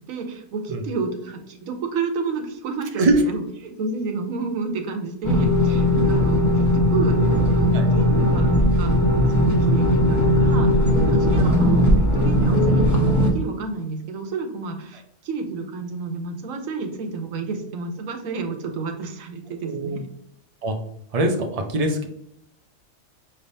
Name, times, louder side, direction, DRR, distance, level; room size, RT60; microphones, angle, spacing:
voice 1, 0.1-9.0 9.3-20.1, right 4 dB, 75° right, 5 dB, 1.1 m, -30 dB
sound 1, 5.2-13.3, left 1 dB, 15° left, 0.9 m, -18 dB
voice 2, 11.4-11.7 19.6-20.0 20.6-20.8 21.1-22.1, right 2 dB, 60° right, 5 dB, 0.4 m, -22 dB
5.9 x 3.4 x 2.7 m, 0.76 s
omnidirectional pair, 1.4 m